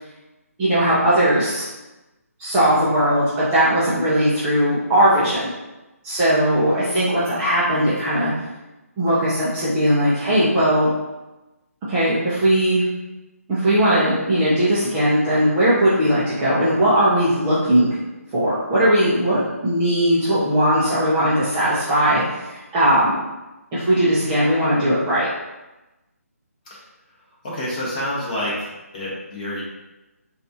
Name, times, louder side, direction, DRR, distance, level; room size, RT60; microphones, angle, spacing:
voice 1, 0.6-1.6 2.4-3.2 3.5-5.5 6.0-8.3 9.0-10.9 11.9-12.8 13.5-17.9 18.3-23.2 23.7-25.3, right 1 dB, 10° right, -11 dB, 0.5 m, -19 dB
voice 2, 27.4-29.6, left 1 dB, 30° left, -6 dB, 1.0 m, -28 dB
4.0 x 2.4 x 2.7 m, 1.0 s
hypercardioid pair, 170°, 8 cm